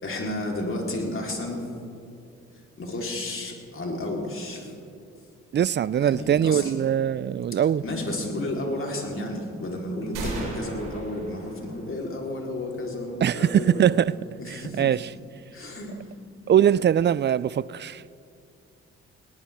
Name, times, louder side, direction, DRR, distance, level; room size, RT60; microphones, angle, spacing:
voice 1, 0.0-1.7 2.8-4.7 6.0-6.7 7.8-14.0 14.4-14.9 15.5-16.1, left 1 dB, 45° left, 3.9 m, -32 dB
voice 2, 5.5-7.8 13.2-14.1 14.5-15.1 16.5-18.0, right 9 dB, 35° right, 0.4 m, -22 dB
sound 1, 10.1-12.0, right 2 dB, 85° right, 4.5 m, -36 dB
19.0 x 18.5 x 3.6 m
supercardioid pair, 50°, 30 cm